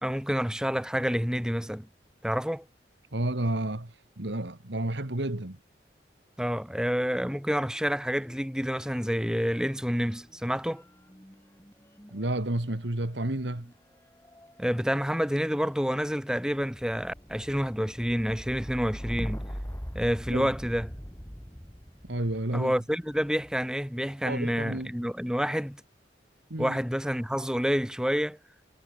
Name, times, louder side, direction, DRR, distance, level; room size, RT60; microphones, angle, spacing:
voice 1, 0.0-1.9 2.2-2.7 6.4-10.8 14.6-19.4 19.9-20.9 22.5-25.8 26.6-28.4, equal, 5° right, 1.8 m, -28 dB
voice 2, 3.1-5.6 12.1-13.7 20.3-20.5 22.1-22.7 24.2-24.9 26.5-26.8, right 1 dB, 75° right, 2.1 m, -31 dB
sound 1, 7.7-8.4 8.7-23.7 24.5-25.1, equal, 15° left, 6.9 m, -43 dB
head